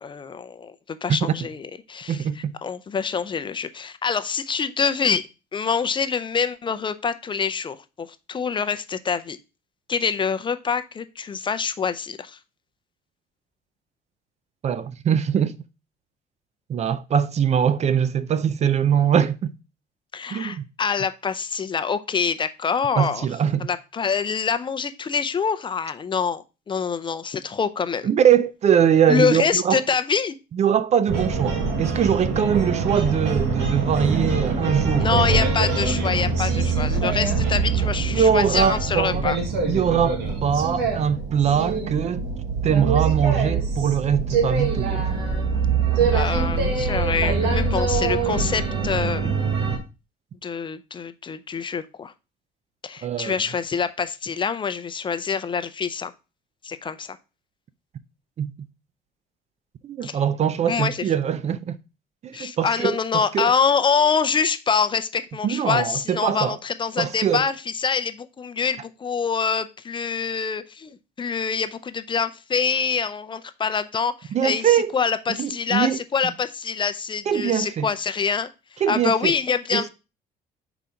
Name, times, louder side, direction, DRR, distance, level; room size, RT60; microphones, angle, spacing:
voice 1, 0.0-5.2 5.5-9.4 9.9-12.4 20.1-23.3 23.6-28.1 29.1-30.4 35.0-39.4 46.1-49.3 50.4-52.1 52.8-56.1 56.6-57.2 60.0-60.2 60.7-61.0 62.3-79.9, left 6 dB, 30° left, 0.5 m, -25 dB
voice 2, 2.1-2.5 14.6-15.6 16.7-19.5 20.3-20.6 23.0-23.7 28.0-29.8 30.5-35.3 38.1-39.2 39.7-42.3 42.6-45.2 53.0-53.4 58.4-58.7 59.8-61.8 62.2-63.5 65.4-66.6 67.0-67.4 74.3-74.9 75.4-76.0 77.3-77.9 78.8-79.3 79.7-79.9, right 8 dB, 40° right, 0.5 m, -22 dB
sound 1, 31.1-49.8, right 4 dB, 90° right, 1.6 m, -24 dB
4.8 x 4.0 x 5.7 m
cardioid pair, 110°, 17 cm